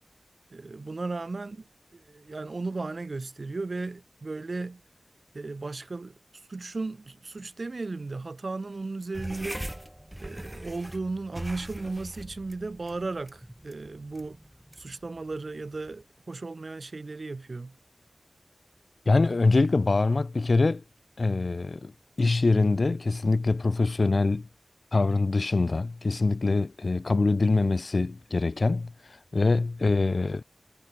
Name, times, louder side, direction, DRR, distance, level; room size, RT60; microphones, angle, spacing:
voice 1, 0.5-4.8 5.3-6.2 6.5-9.7 10.2-14.4 14.8-17.8, right 3 dB, 60° right, 2.3 m, -35 dB
sound 1, 9.1-16.0, right 1 dB, 10° right, 1.4 m, -42 dB
voice 2, 19.1-20.8 21.2-21.9 22.2-24.5 24.9-28.9 29.3-30.4, left 3 dB, 60° left, 1.1 m, -24 dB
wide cardioid pair, 60°, 0 cm